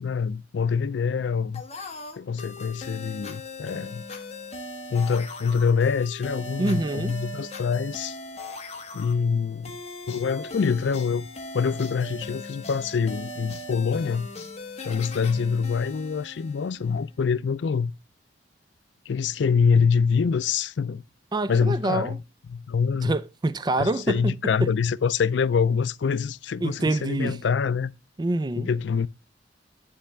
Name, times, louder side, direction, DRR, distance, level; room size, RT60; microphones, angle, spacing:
voice 1, 0.0-1.6 2.2-4.0 4.9-8.2 8.9-9.8 10.1-11.3 11.5-14.3 14.8-17.9 19.1-21.0 21.5-22.2 22.5-23.1 23.8-27.9 28.6-29.1, left 6 dB, 75° left, 0.4 m, -25 dB
sound 1, 1.5-17.0, left 2 dB, 35° left, 1.3 m, -39 dB
voice 2, 6.6-7.2 21.3-22.2 23.0-24.3 24.6-24.7 26.6-27.4 28.2-28.7, right 2 dB, 25° right, 0.4 m, -26 dB
10.0 x 3.4 x 6.4 m
head